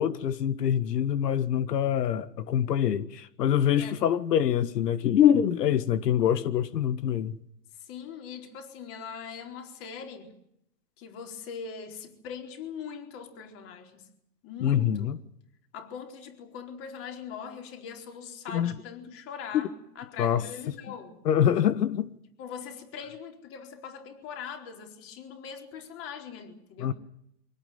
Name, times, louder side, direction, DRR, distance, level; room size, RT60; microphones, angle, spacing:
voice 1, 0.0-7.4 14.6-15.2 18.5-18.7 19.5-19.6 20.2-20.4 21.3-22.1 26.8-26.9, left 9 dB, 90° left, 1.7 m, -25 dB
voice 2, 7.8-10.4 11.0-14.1 14.4-15.1 15.7-21.2 22.4-26.9, left 6 dB, 30° left, 4.4 m, -41 dB
25.0 x 18.0 x 9.3 m
supercardioid pair, 160°, 47 cm